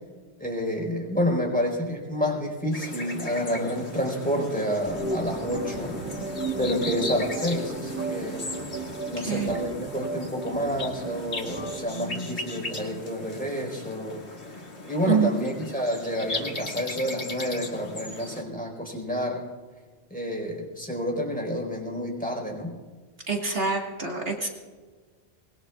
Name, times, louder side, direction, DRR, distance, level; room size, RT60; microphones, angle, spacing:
voice 1, 0.4-5.9 6.3-8.4 9.1-14.2 14.9-19.4 20.1-22.7, equal, 5° left, 0 dB, 4.4 m, -29 dB
sound 1, 2.7-18.4, left 2 dB, 75° left, 2.4 m, -37 dB
sound 2, 4.8-11.8, right 3 dB, 10° right, 1.2 m, -34 dB
voice 2, 9.2-9.5 15.1-15.3 23.3-24.5, right 5 dB, 60° right, 0 dB, 2.0 m, -26 dB
24.5 x 20.5 x 2.4 m, 1.5 s
omnidirectional pair, 1.1 m